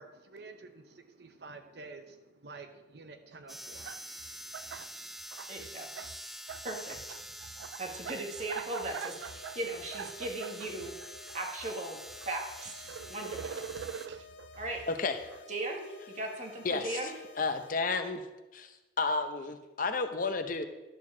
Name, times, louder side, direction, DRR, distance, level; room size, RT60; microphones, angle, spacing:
voice 1, 0.0-5.2, right 3 dB, 65° right, 7 dB, 0.8 m, -50 dB
sound 1, 3.3-3.4 3.7-4.9 5.2-6.2 6.5-11.7 12.1-15.4, right 7 dB, 90° right, 0.3 m, -44 dB
sound 2, 3.5-14.1, equal, ahead, 0.3 m, -46 dB
voice 2, 5.5-5.9 6.6-7.0 7.8-10.9 11.3-12.0 12.3-12.8 13.1-13.6 14.6-14.8 15.5-17.1, right 2 dB, 40° right, 1 dB, 1.7 m, -37 dB
sound 3, 8.7-17.7, left 5 dB, 85° left, 0.8 m, -53 dB
voice 3, 16.6-17.0 17.4-18.2 18.5-18.7 19.0-20.7, left 4 dB, 50° left, 8 dB, 0.7 m, -31 dB
11.5 x 4.6 x 7.2 m, 1.1 s
head